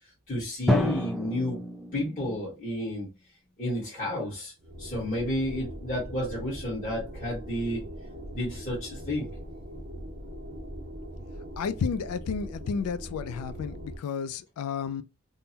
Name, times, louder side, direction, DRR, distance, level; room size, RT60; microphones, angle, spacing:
voice 1, 0.3-1.6 1.9-3.1 3.6-4.5 4.8-7.8 8.3-9.3, left 1 dB, 35° left, 1.3 m, -31 dB
Drum, 0.7-2.6, equal, ahead, 0.3 m, -29 dB
sound 1, 4.6-14.0, equal, 45° right, 0.7 m, -41 dB
voice 2, 11.6-15.0, left 6 dB, 90° left, 0.3 m, -32 dB
3.6 x 2.0 x 2.7 m
head